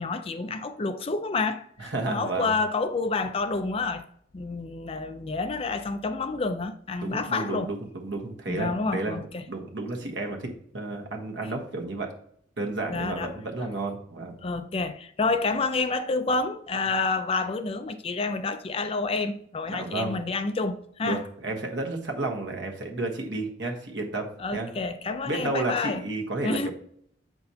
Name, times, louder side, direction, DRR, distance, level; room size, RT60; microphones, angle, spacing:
voice 1, 0.0-4.1 4.3-7.7 8.5-9.4 12.9-13.3 14.4-21.2 24.4-26.0 26.4-26.7, left 3 dB, 30° left, 0.4 m, -29 dB
voice 2, 1.8-2.5 7.0-9.2 9.5-12.1 12.6-14.3 19.7-20.2 21.0-24.8 25.2-26.7, right 2 dB, 75° right, 1.3 m, -32 dB
7.6 x 5.9 x 2.8 m
head